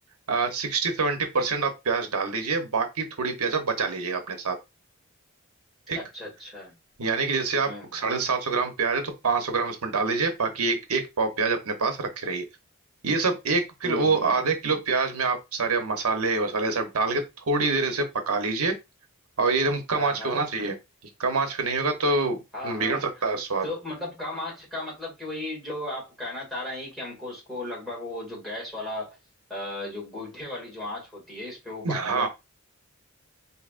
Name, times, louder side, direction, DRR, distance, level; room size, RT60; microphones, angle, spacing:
voice 1, 0.3-4.6 5.9-6.0 7.0-12.4 13.0-17.2 17.5-18.7 19.4-20.7 21.2-22.4 22.6-23.6 31.8-32.3, right 4 dB, 85° right, 0.8 m, -26 dB
voice 2, 5.9-6.7 7.7-7.9 13.8-14.4 19.9-20.4 22.5-23.0 23.6-29.2 29.5-32.3, left 2 dB, ahead, 2.1 m, -36 dB
4.8 x 2.8 x 2.5 m
head